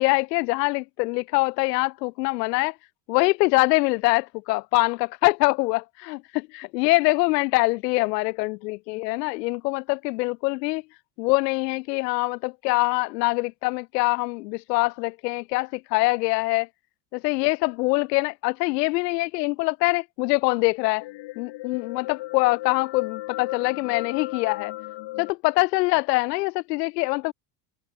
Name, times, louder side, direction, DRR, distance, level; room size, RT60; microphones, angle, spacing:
voice 1, 0.0-2.8 3.1-10.8 11.2-16.7 17.1-21.1 21.4-24.7 25.2-27.3, left 24 dB, 85° left, 1.0 m, -24 dB
sound 1, 21.0-25.3, left 18 dB, 65° left, 3.7 m, -35 dB
hypercardioid pair, 80°, 48 cm